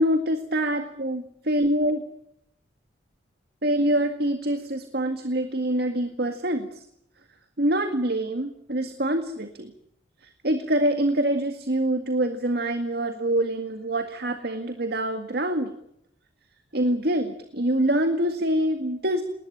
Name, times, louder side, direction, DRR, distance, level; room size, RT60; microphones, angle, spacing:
voice 1, 0.0-2.0 3.6-6.8 7.6-9.7 10.2-15.7 16.7-19.3, right 1 dB, 60° right, 7 dB, 2.0 m, -25 dB
20.5 x 20.0 x 8.8 m, 0.76 s
head